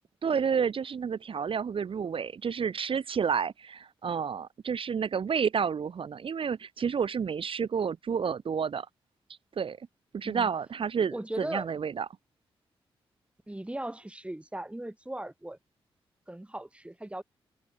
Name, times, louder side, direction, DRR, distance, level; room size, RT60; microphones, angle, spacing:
voice 1, 0.2-8.9 9.6-9.8 10.1-12.1, right 6 dB, 65° right, 2.1 m, -30 dB
voice 2, 11.1-11.7 13.5-15.6 16.3-17.2, right 1 dB, 10° right, 1.9 m, -38 dB
supercardioid pair, 50°, 10 cm